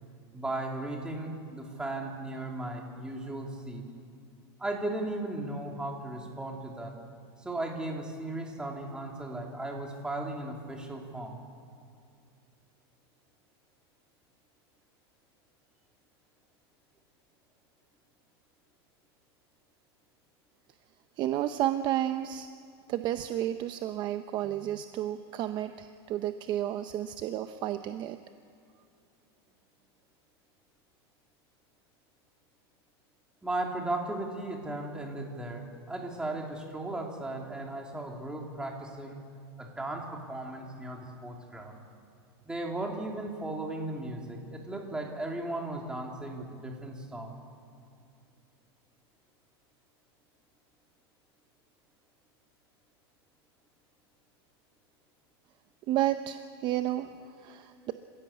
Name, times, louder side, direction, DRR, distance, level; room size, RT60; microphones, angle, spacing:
voice 1, 0.3-3.8 4.6-6.9 7.4-11.4 33.4-39.2 39.6-41.8 42.4-47.4, right 2 dB, 5° right, 0 dB, 3.0 m, -36 dB
voice 2, 21.2-22.5 22.9-28.2 55.9-57.9, right 12 dB, 35° right, 10 dB, 0.7 m, -31 dB
27.0 x 16.0 x 8.6 m, 2.5 s
supercardioid pair, 155°, 14 cm